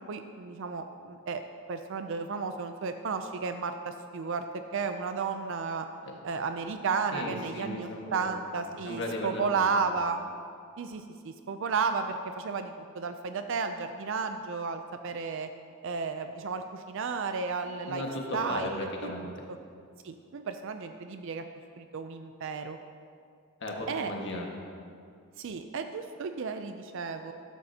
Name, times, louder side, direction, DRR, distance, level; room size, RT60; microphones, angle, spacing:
voice 1, 0.1-1.4 1.7-5.9 6.2-10.2 10.8-15.5 15.8-18.0 18.3-19.1 19.5-19.6 20.0-21.5 21.8-22.8 23.9-24.1 25.4-27.3, right 5 dB, 60° right, 7 dB, 0.4 m, -33 dB
voice 2, 7.1-8.3 8.8-9.7 17.8-19.4 23.6-24.5, left 1 dB, 55° left, -1 dB, 1.6 m, -36 dB
13.0 x 11.0 x 2.8 m, 2.3 s
head